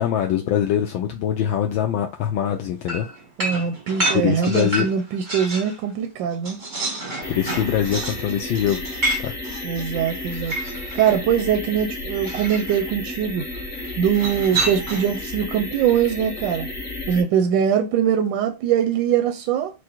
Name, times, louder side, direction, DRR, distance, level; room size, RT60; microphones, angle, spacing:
voice 1, 0.0-3.1 4.1-4.9 7.3-8.8 9.2-9.3, left 10 dB, 75° left, 1.3 m, -23 dB
sound 1, 2.9-5.8 6.1-11.2 12.2-12.8 14.1-15.2, right 2 dB, 35° right, 0.8 m, -29 dB
voice 2, 3.4-6.6 9.6-10.6 10.9-13.4 14.0-16.7 17.1-19.7, right 8 dB, 75° right, 1.2 m, -22 dB
sound 2, 7.2-17.2, left 2 dB, 40° left, 0.9 m, -33 dB
4.9 x 2.2 x 4.4 m
omnidirectional pair, 2.3 m